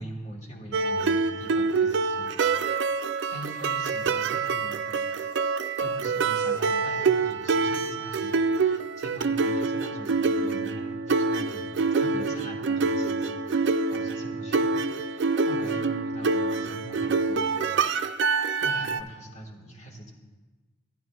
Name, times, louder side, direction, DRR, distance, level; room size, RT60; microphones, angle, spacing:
voice 1, 0.0-2.3 2.6-2.9 3.3-5.0 5.8-18.3 18.6-20.1, right 1 dB, 35° left, 1 dB, 1.5 m, -42 dB
sound 1, 0.7-19.0, right 4 dB, 70° right, 0.4 m, -26 dB
13.5 x 10.0 x 2.3 m, 1.2 s
head